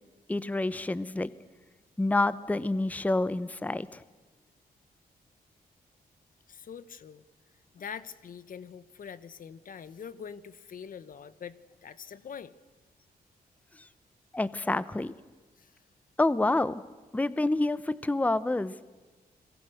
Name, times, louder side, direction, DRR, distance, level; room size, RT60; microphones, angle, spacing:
voice 1, 0.3-1.3 2.0-4.0 13.7-13.9 14.3-15.1 16.2-16.8 17.1-18.7, left 2 dB, 10° left, 16 dB, 0.7 m, -28 dB
voice 2, 6.5-7.2 7.7-12.5 15.6-15.8, left 7 dB, 60° left, 16 dB, 1.0 m, -44 dB
30.0 x 22.0 x 6.4 m, 1.3 s
cardioid pair, 100°, 16 cm